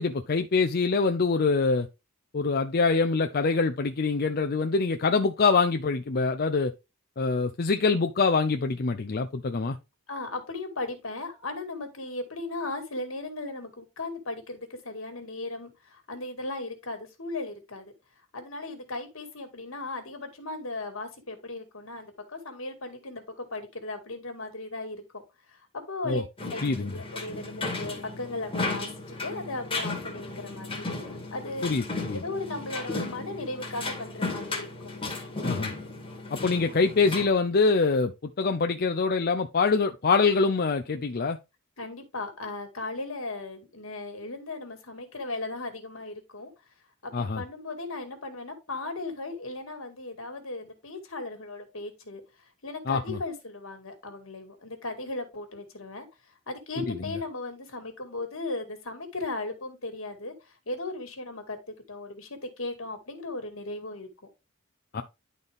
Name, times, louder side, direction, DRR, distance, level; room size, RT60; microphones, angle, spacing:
voice 1, 0.0-1.9 2.3-6.7 7.2-9.8 26.1-26.2 26.6-27.0 31.6-32.2 35.4-35.7 36.3-41.4 47.1-47.4 52.9-53.2 56.9-57.2 64.9-65.0, left 4 dB, 45° left, 0.6 m, -25 dB
voice 2, 10.1-17.9 18.3-25.2 25.5-26.2 26.5-26.6 26.9-30.9 31.3-31.7 32.1-34.9 41.8-46.5 47.0-52.2 52.6-56.1 56.5-60.3 60.7-61.6 61.9-64.1, left 2 dB, 70° left, 2.1 m, -37 dB
sound 1, 26.4-37.3, left 3 dB, 25° left, 1.9 m, -35 dB
11.0 x 4.1 x 3.4 m
head